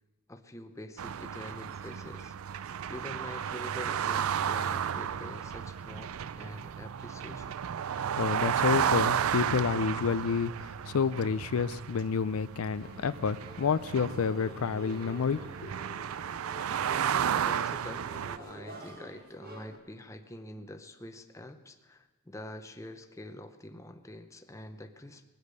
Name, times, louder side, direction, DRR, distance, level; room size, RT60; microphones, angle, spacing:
voice 1, 0.3-2.3 2.9-7.6 17.2-25.2, left 1 dB, 15° left, 8 dB, 0.7 m, -46 dB
sound 1, 1.0-18.4, right 8 dB, 75° right, 0.4 m, -33 dB
voice 2, 8.2-15.7, left 6 dB, 80° left, 14 dB, 0.5 m, -29 dB
sound 2, 12.8-19.8, right 2 dB, 45° right, 1.7 m, -47 dB
20.5 x 8.1 x 6.7 m, 1.3 s
head